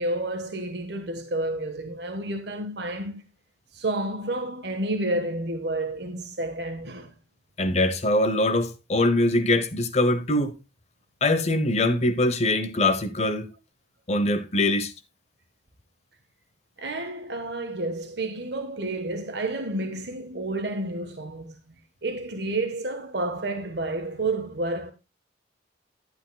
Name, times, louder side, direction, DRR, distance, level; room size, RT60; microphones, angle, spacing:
voice 1, 0.0-3.2 3.7-7.1 16.8-21.5 22.0-24.9, right 2 dB, 60° right, 1.3 m, -30 dB
voice 2, 7.6-10.5 11.2-13.5 14.1-14.9, left 1 dB, 35° left, 0.8 m, -23 dB
11.5 x 11.0 x 2.3 m
head